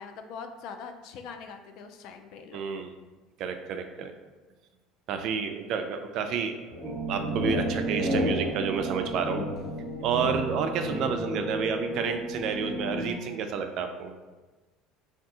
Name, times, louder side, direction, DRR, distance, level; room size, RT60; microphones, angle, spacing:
voice 1, 0.0-2.6, left 5 dB, 65° left, 7 dB, 0.3 m, -42 dB
voice 2, 2.5-2.9 3.4-4.1 5.1-9.4 10.0-14.1, right 6 dB, 55° right, 6 dB, 0.3 m, -30 dB
sound 1, 6.7-11.4, left 1 dB, 25° left, 1.4 m, -33 dB
sound 2, 6.8-13.1, right 2 dB, ahead, 0.8 m, -34 dB
2.6 x 2.4 x 3.5 m, 1.2 s
cardioid pair, 125°, 0 cm